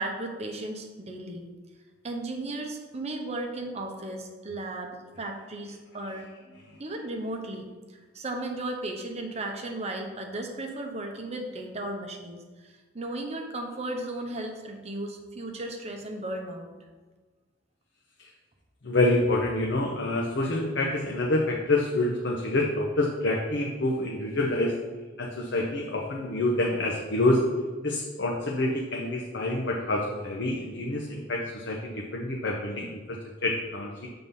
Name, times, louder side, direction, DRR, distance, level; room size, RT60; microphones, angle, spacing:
voice 1, 0.0-1.4 2.0-6.3 6.8-7.7 8.1-16.7, right 2 dB, 35° right, 3 dB, 0.9 m, -35 dB
voice 2, 18.8-24.7 25.2-27.4 27.8-34.1, left 2 dB, 65° left, -1 dB, 0.8 m, -27 dB
6.8 x 3.9 x 5.4 m, 1.4 s
head